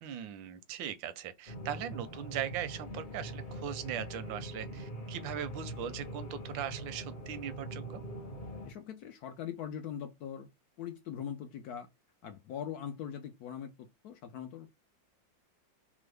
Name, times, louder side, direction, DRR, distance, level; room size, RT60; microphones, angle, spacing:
voice 1, 0.0-8.0, right 9 dB, 85° right, 1.3 m, -39 dB
sound 1, 1.5-8.7, right 1 dB, 55° left, 0.4 m, -42 dB
voice 2, 8.6-10.5 10.8-11.9 12.2-13.7 14.0-14.7, left 9 dB, 70° left, 0.9 m, -41 dB
3.5 x 2.0 x 3.2 m
omnidirectional pair, 2.0 m